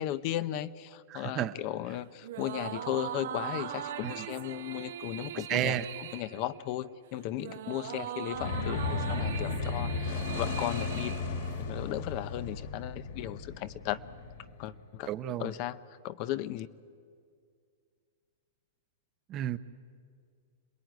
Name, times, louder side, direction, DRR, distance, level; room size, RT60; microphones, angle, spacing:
voice 1, 0.0-11.1 11.6-14.0 14.6-15.1 15.4-15.8 16.0-16.7, left 13 dB, 40° left, 14 dB, 0.7 m, -36 dB
voice 2, 1.1-1.5 4.0-4.1 5.5-5.9 15.1-15.5 19.3-19.6, right 12 dB, 25° right, 12 dB, 0.8 m, -31 dB
sound 1, 2.2-11.9, right 10 dB, 70° right, 1.5 m, -40 dB
sound 2, 8.3-14.9, left 4 dB, 60° left, 2.5 m, -35 dB
27.0 x 20.5 x 9.3 m, 2.2 s
supercardioid pair, 160°, 0 cm